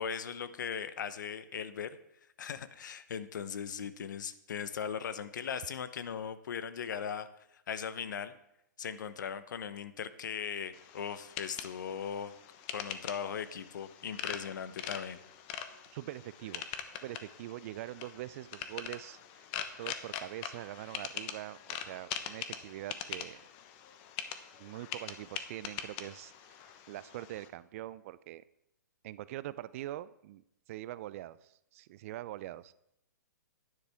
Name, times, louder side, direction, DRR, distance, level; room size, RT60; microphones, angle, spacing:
voice 1, 0.0-2.0 2.4-7.3 7.7-8.3 8.8-12.3 12.7-15.2, left 7 dB, 70° left, 13 dB, 0.8 m, -38 dB
sound 1, 10.7-27.5, left 9 dB, 40° left, 0.9 m, -43 dB
voice 2, 15.9-16.7 17.0-19.5 19.8-23.4 24.6-28.4 29.0-32.7, right 14 dB, 45° right, 17 dB, 0.4 m, -43 dB
11.5 x 9.9 x 3.5 m, 0.78 s
hypercardioid pair, 135°, 10 cm